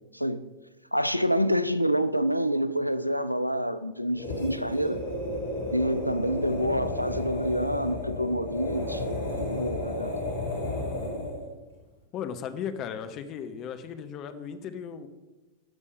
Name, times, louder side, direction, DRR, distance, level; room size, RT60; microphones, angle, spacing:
voice 1, 0.1-0.5 0.9-5.0 5.7-10.4 10.6-10.7, equal, 90° right, 0.4 m, -27 dB
sound 1, 4.1-11.5, left 1 dB, 70° left, 2.2 m, -33 dB
voice 2, 12.1-15.1, left 7 dB, 35° left, 0.8 m, -36 dB
13.0 x 5.4 x 5.2 m
figure-of-eight pair, 90°, 0 cm